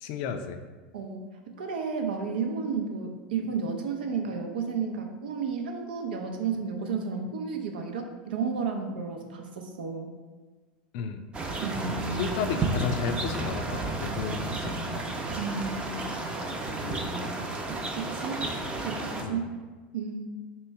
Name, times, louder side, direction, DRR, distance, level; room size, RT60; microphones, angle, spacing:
voice 1, 0.0-0.6 10.9-11.2 12.1-15.0 16.8-17.3 19.2-19.5, left 6 dB, 60° left, 7 dB, 0.4 m, -33 dB
voice 2, 1.5-10.1 11.6-12.3 15.4-16.1 18.0-18.4 18.8-19.4 19.9-20.3, right 5 dB, 80° right, 3 dB, 0.6 m, -32 dB
sound 1, 11.3-19.2, right 2 dB, 20° right, 0.6 m, -32 dB
3.1 x 3.0 x 4.6 m, 1.4 s
hypercardioid pair, 105°, 5 cm